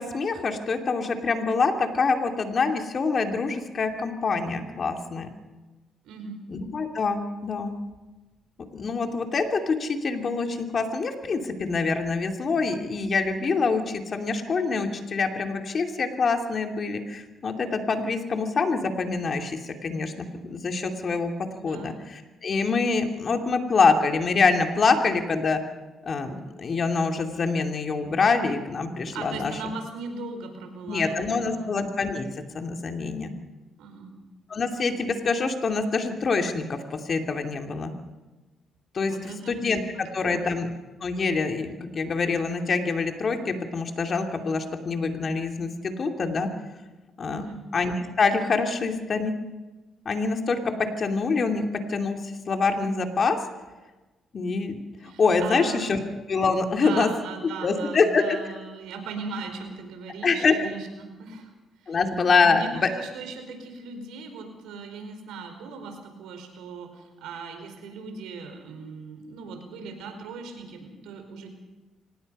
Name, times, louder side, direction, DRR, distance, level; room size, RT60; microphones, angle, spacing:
voice 1, 0.0-5.3 6.5-7.7 8.7-21.3 21.6-25.6 26.1-29.5 30.9-32.3 32.5-33.3 34.5-37.9 38.9-40.7 41.0-46.5 47.2-47.4 47.7-49.3 50.0-50.6 51.0-52.2 52.5-53.4 54.3-56.0 56.3-57.1 57.6-58.4 60.2-60.6 61.9-62.9, left 4 dB, 45° left, 4 dB, 2.7 m, -25 dB
voice 2, 6.0-6.4 21.7-21.9 29.1-31.7 33.8-34.1 38.9-39.5 40.2-40.4 47.3-47.6 55.0-55.8 56.7-61.5 61.8-62.0 62.4-71.5, right 4 dB, 90° right, 5 dB, 4.8 m, -38 dB
25.0 x 19.5 x 5.5 m, 1.2 s
cardioid pair, 90°, 0 cm